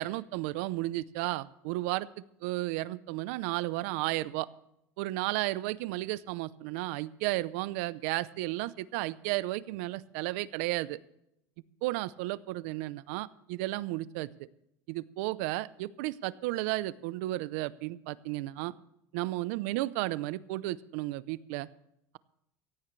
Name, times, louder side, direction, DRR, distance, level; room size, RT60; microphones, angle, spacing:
voice 1, 0.0-2.1 2.4-4.5 5.0-11.0 11.8-14.5 14.9-18.7 19.1-21.7, right 18 dB, 70° right, 18 dB, 0.6 m, -33 dB
16.5 x 16.0 x 3.2 m, 0.79 s
cardioid pair, 160°, 8 cm